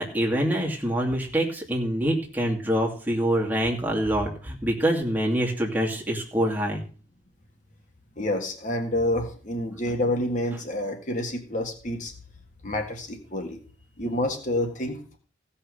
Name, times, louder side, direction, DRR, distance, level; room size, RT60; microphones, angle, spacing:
voice 1, 0.0-6.8, equal, 10° right, -2 dB, 2.6 m, -25 dB
voice 2, 8.2-12.1 12.6-13.6 14.0-15.2, left 1 dB, 45° left, 4 dB, 1.7 m, -28 dB
16.0 x 5.8 x 6.6 m, 0.40 s
head